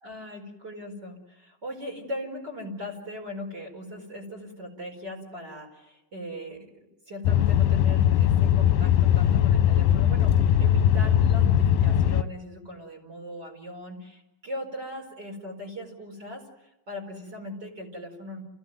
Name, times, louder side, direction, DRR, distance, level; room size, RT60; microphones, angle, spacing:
voice 1, 0.0-16.5 16.9-18.4, left 1 dB, 30° right, 1 dB, 5.0 m, -39 dB
sound 1, 7.2-12.2, left 10 dB, 80° left, 2.7 m, -20 dB
29.5 x 16.0 x 9.2 m, 0.98 s
omnidirectional pair, 4.2 m